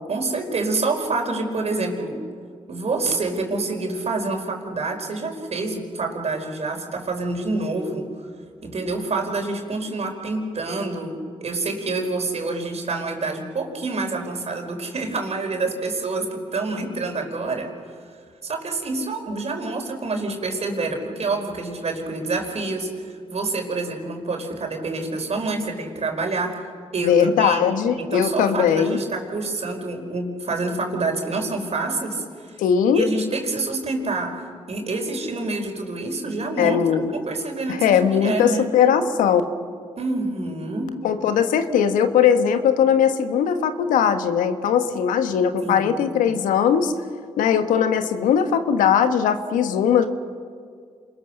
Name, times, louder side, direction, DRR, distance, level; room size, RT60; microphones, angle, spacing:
voice 1, 0.1-2.2 2.7-8.1 8.6-17.7 18.4-26.6 26.9-27.6 28.0-32.6 32.9-36.8 37.1-38.7 40.0-40.9 45.6-45.9, right 3 dB, 50° right, 3 dB, 4.9 m, -27 dB
voice 2, 27.0-29.0 32.6-33.1 36.6-37.1 37.7-39.4 41.0-46.9 47.4-50.1, left 8 dB, 80° left, 9 dB, 1.4 m, -19 dB
27.5 x 21.5 x 6.6 m, 2.1 s
supercardioid pair, 45°, 14 cm